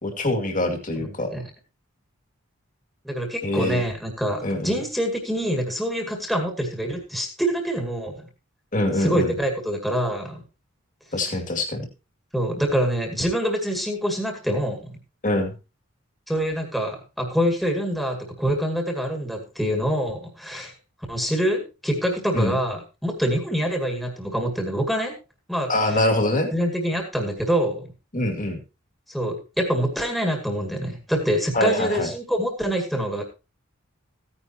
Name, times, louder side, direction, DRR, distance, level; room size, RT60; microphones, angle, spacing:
voice 1, 0.0-1.3 3.4-3.8 4.4-4.8 8.7-9.3 11.1-11.9 15.2-15.5 22.3-22.5 25.7-26.5 28.1-28.6 31.5-32.1, left 1 dB, 35° left, 3 dB, 2.4 m, -24 dB
voice 2, 0.9-1.5 3.0-8.2 8.9-10.4 11.3-11.4 12.3-15.0 16.3-20.7 21.1-25.1 25.5-26.0 26.5-27.8 29.1-33.2, equal, ahead, 2 dB, 2.1 m, -25 dB
15.5 x 9.8 x 2.9 m, 0.29 s
head